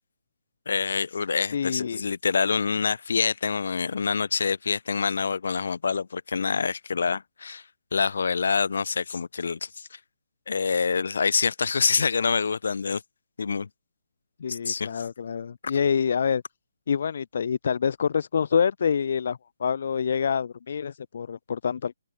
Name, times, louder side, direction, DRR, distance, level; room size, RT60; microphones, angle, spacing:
voice 1, 0.7-7.6 7.9-9.9 10.5-13.0 13.4-13.7 14.5-14.9, left 5 dB, 70° left, 6.5 m, -26 dB
voice 2, 1.5-2.0 14.4-16.4 16.9-21.9, left 7 dB, 55° left, 2.9 m, -26 dB
open air
hypercardioid pair, 165°, 0 cm